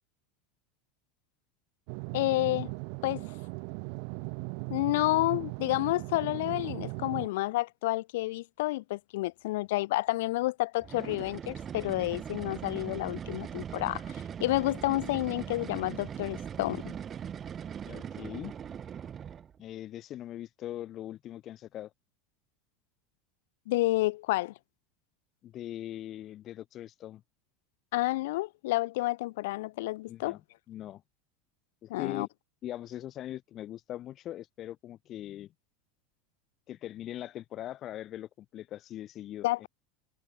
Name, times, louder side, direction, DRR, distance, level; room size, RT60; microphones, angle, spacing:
sound 1, 1.9-7.3, right 40 dB or more, 60° right, 0.5 m, -38 dB
voice 1, 2.1-2.7 3.0-3.3 4.7-16.9 23.7-24.5 27.9-30.4 31.9-32.3 39.4-39.7, left 19 dB, 75° left, 0.3 m, -30 dB
sound 2, 10.8-19.6, right 8 dB, 25° right, 1.1 m, -40 dB
voice 2, 17.9-18.5 19.6-21.9 25.4-27.2 30.1-30.4 30.7-31.0 31.8-32.3 32.6-35.5 36.7-39.7, left 12 dB, 35° left, 0.7 m, -41 dB
supercardioid pair, 140°, 0 cm